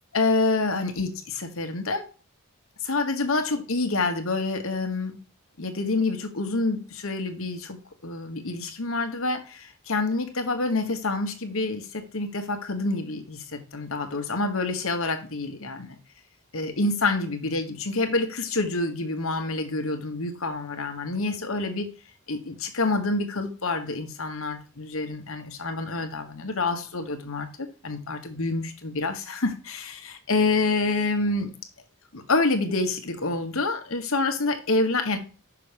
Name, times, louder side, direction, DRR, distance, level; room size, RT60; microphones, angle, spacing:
voice 1, 0.1-2.1 2.8-5.2 5.6-7.8 8.0-16.0 16.5-21.9 22.3-27.5 27.8-31.5 32.1-35.2, left 3 dB, 65° left, 7 dB, 1.3 m, -27 dB
5.9 x 5.9 x 5.1 m, 0.35 s
head